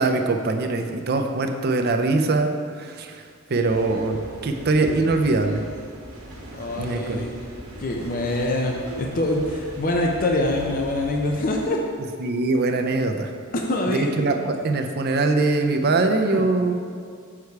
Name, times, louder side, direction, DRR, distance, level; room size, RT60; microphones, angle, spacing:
voice 1, 0.0-2.5 2.8-3.1 3.5-5.6 6.8-7.2 12.2-13.3 13.9-16.7, right 3 dB, 50° right, 5 dB, 0.5 m, -22 dB
sound 1, 3.7-11.7, right 1 dB, 90° right, 1.5 m, -39 dB
voice 2, 6.5-7.3 7.8-11.8 13.5-14.1 16.3-16.5, left 1 dB, 40° left, 0 dB, 0.6 m, -24 dB
6.8 x 4.9 x 4.6 m, 2.1 s
head